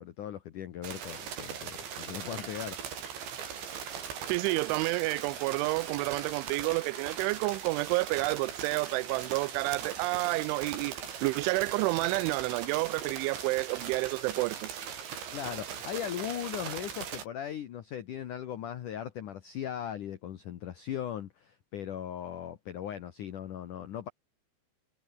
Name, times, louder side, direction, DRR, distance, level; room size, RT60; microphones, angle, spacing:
voice 1, 0.0-2.9 15.3-24.1, left 10 dB, 65° left, 2.0 m, -38 dB
sound 1, 0.8-17.2, right 8 dB, 65° right, 6.1 m, -40 dB
voice 2, 4.3-14.8, right 24 dB, 85° right, 3.0 m, -30 dB
omnidirectional pair, 5.6 m